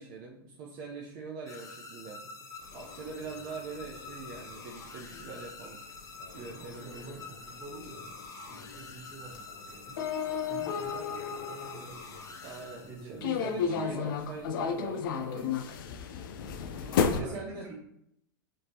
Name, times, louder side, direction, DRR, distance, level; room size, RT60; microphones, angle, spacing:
voice 1, 0.0-2.2 2.7-5.8 6.3-7.2 12.4-15.5 16.6-17.7, right 4 dB, 55° right, -1 dB, 0.7 m, -43 dB
sound 1, 1.5-13.3, left 3 dB, 30° left, 0.8 m, -47 dB
sound 2, 2.7-12.5 13.2-17.2, left 6 dB, 70° left, 0.5 m, -34 dB
voice 2, 6.3-10.1 10.5-13.8 14.8-16.0 16.6-17.7, right 3 dB, 20° right, -1 dB, 1.6 m, -49 dB
4.9 x 3.2 x 2.9 m, 0.75 s
hypercardioid pair, 100°, 12 cm